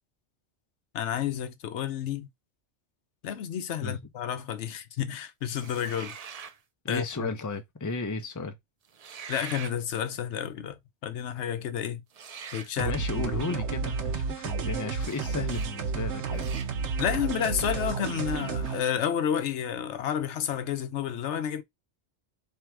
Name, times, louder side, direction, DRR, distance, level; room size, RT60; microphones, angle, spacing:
voice 1, 0.9-2.3 3.2-6.2 6.9-7.3 9.3-12.0 12.5-13.4 17.0-21.6, left 9 dB, 80° left, 1.0 m, -31 dB
sound 1, 5.5-6.6 8.9-9.8 12.1-12.7 15.0-15.2 15.5-15.7 16.3-16.7, right 6 dB, 50° right, 0.5 m, -42 dB
voice 2, 6.8-8.6 12.8-16.6, left 3 dB, 20° left, 0.6 m, -34 dB
sound 2, 12.8-18.8, right 5 dB, 80° right, 1.0 m, -31 dB
3.6 x 3.0 x 4.5 m
omnidirectional pair, 1.2 m